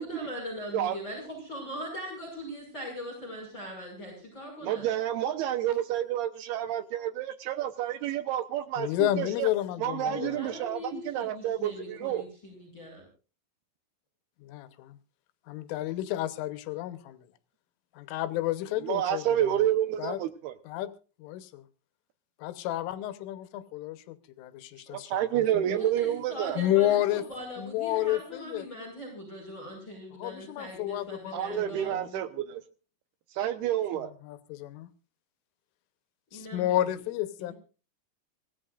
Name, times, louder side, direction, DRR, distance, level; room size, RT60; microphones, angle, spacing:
voice 1, 0.0-4.9 10.1-13.0 25.7-32.0 36.3-36.8 37.4-37.5, left 1 dB, 25° left, 6.2 m, -41 dB
voice 2, 4.6-8.9 9.2-9.5 9.8-12.2 18.8-20.5 24.9-26.6 31.3-32.6 33.4-34.1, right 11 dB, 75° right, 2.5 m, -29 dB
voice 3, 8.8-10.5 14.4-15.0 15.5-17.3 17.9-19.6 20.0-20.2 20.7-20.9 21.2-21.6 22.4-25.8 26.6-27.2 27.6-28.9 30.1-32.2 33.9-34.9 36.3-37.5, left 13 dB, 90° left, 3.6 m, -31 dB
25.5 x 17.0 x 2.5 m
omnidirectional pair, 5.5 m